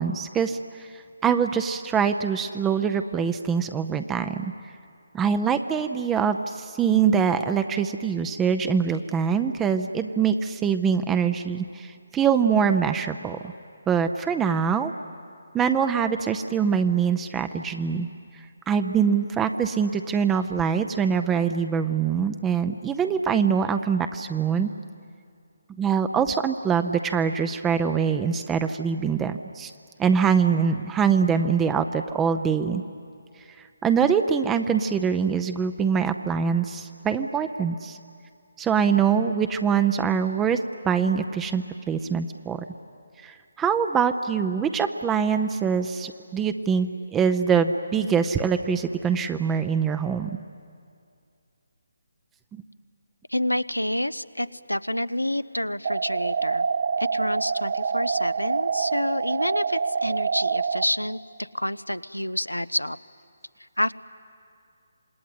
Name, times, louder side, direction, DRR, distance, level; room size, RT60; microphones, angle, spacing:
voice 1, 0.0-4.5 5.1-13.5 13.9-14.9 15.5-18.1 18.3-24.7 25.8-29.7 30.0-32.8 33.6-38.0 38.6-40.6 40.8-42.6 43.2-50.3 52.5-52.6, right 6 dB, 10° right, 8 dB, 0.6 m, -24 dB
voice 2, 53.3-56.7 57.0-63.0 63.6-63.9, left 1 dB, 85° left, 15 dB, 0.7 m, -28 dB
sound 1, 55.8-60.8, right 5 dB, 45° right, 0.8 m, -26 dB
27.0 x 19.5 x 9.6 m, 2.4 s
figure-of-eight pair, 145°, 0 cm